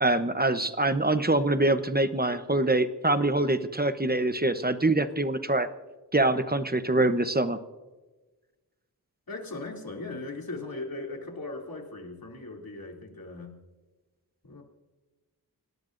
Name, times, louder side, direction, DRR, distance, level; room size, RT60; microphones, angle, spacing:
voice 1, 0.0-5.7 6.1-7.6, right 2 dB, 25° right, 10 dB, 0.9 m, -24 dB
voice 2, 9.3-13.6 14.4-14.6, left 2 dB, 70° left, 0 dB, 3.0 m, -38 dB
29.5 x 19.0 x 2.6 m, 1.2 s
wide cardioid pair, 55°, 37 cm